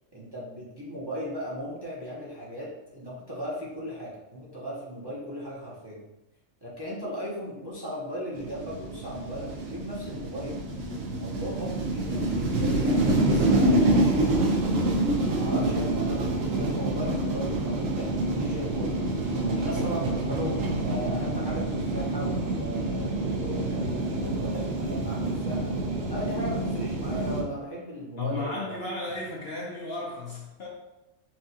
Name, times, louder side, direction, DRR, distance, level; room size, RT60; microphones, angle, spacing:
voice 1, 0.1-6.0 6.6-10.6 11.2-14.7 15.3-19.1 19.6-25.7 26.1-28.8, equal, 20° right, -7 dB, 0.8 m, -37 dB
sound 1, 8.4-27.4, right 1 dB, 80° right, 1.1 m, -27 dB
voice 2, 28.2-30.7, left 2 dB, 55° left, -3 dB, 0.8 m, -34 dB
5.7 x 2.4 x 2.8 m, 0.97 s
omnidirectional pair, 1.4 m